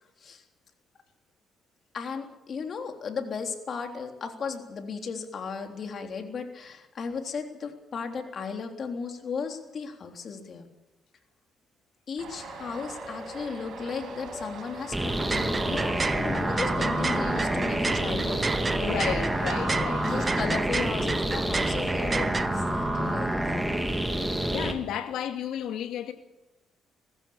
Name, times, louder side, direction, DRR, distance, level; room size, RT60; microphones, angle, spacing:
voice 1, 1.9-10.7 12.1-18.5 19.8-23.7, left 5 dB, 50° left, 3.5 m, -35 dB
Traffic noise roadway noise, 12.2-20.4, right 2 dB, 65° right, 5.9 m, -39 dB
sound 1, 14.9-24.7, right 1 dB, 10° right, 3.0 m, -28 dB
sound 2, 15.1-22.5, right 4 dB, 30° right, 0.6 m, -32 dB
voice 2, 18.8-20.1 24.5-26.1, left 9 dB, 85° left, 2.2 m, -32 dB
20.0 x 15.5 x 8.8 m
cardioid pair, 90°, 0 cm